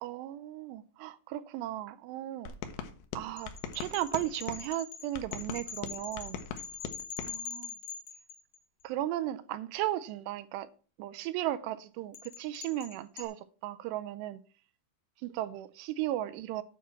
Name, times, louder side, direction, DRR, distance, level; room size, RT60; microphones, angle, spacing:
voice 1, 0.0-2.5 3.1-6.4 7.2-7.7 8.8-10.7 11.0-14.4 15.2-16.6, right 14 dB, 85° right, 2.7 m, -36 dB
sound 1, 2.5-4.6 5.1-7.3, left 7 dB, 85° left, 3.2 m, -41 dB
sound 2, 3.4-8.8 12.1-13.3, left 7 dB, 65° left, 1.9 m, -43 dB
9.4 x 4.4 x 7.0 m
omnidirectional pair, 4.9 m